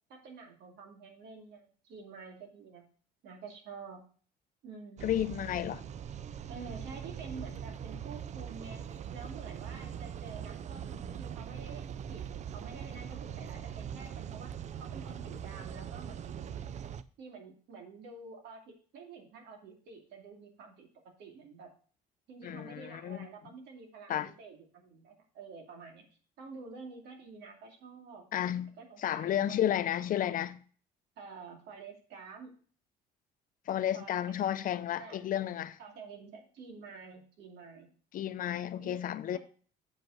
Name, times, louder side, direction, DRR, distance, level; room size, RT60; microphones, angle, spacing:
voice 1, 0.1-2.9 3.2-4.0 4.6-5.2 6.5-11.8 12.1-12.2 12.5-14.5 14.8-16.7 17.2-20.9 21.2-21.7 22.3-26.0 26.4-28.2 28.8-29.6 31.2-32.5 33.9-34.4 35.0-35.3 35.8-37.9 38.8-38.9, right 4 dB, 75° right, 2.5 m, -49 dB
voice 2, 5.0-5.8 22.4-23.3 24.1-24.3 28.3-28.7 29.0-30.6 33.7-35.8 38.1-39.4, left 11 dB, 55° left, 0.6 m, -32 dB
sound 1, 5.0-17.0, right 8 dB, 45° right, 0.5 m, -42 dB
7.7 x 5.3 x 5.5 m
cardioid pair, 110°, 17 cm